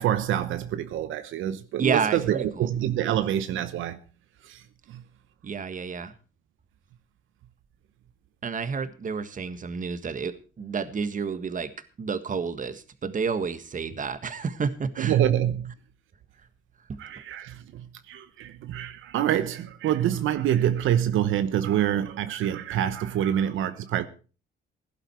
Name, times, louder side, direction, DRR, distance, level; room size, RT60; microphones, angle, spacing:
voice 1, 0.0-4.0 4.4-4.6 4.9-5.0 15.0-15.7 17.0-24.1, right 11 dB, 80° right, 1.0 m, -26 dB
voice 2, 1.8-2.7 5.4-6.1 8.4-11.7 12.0-15.2 16.9-17.0, right 5 dB, 40° right, 1.7 m, -30 dB
16.5 x 11.5 x 4.4 m
cardioid pair, 90°, 20 cm